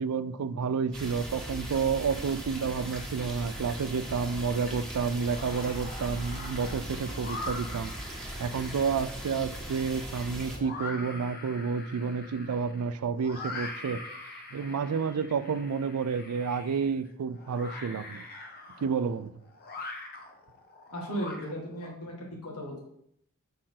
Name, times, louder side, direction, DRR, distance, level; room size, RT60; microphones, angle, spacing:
voice 1, 0.0-14.0 14.5-18.2 18.8-19.3, right 5 dB, 85° right, 13 dB, 0.4 m, -30 dB
sound 1, 0.9-10.6, right 1 dB, 5° left, 1.7 m, -39 dB
sound 2, 4.1-4.8 5.2-21.9, left 2 dB, 45° left, 1.1 m, -43 dB
voice 2, 20.9-22.8, equal, 85° left, -2 dB, 2.0 m, -36 dB
6.3 x 4.3 x 5.8 m, 0.73 s
head